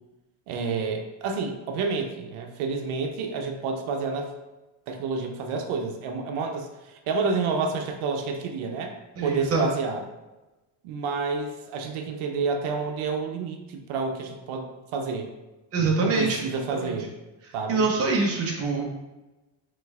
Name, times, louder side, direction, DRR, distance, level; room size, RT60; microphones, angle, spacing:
voice 1, 0.5-4.3 4.9-9.0 9.2-10.0 10.8-15.3 16.0-17.1 17.5-17.9, right 4 dB, 80° right, 4 dB, 0.7 m, -29 dB
voice 2, 9.2-9.7 15.7-16.4 17.7-18.8, right 3 dB, 30° right, -1 dB, 0.7 m, -24 dB
5.0 x 3.2 x 2.4 m, 1.1 s
cardioid pair, 160°, 49 cm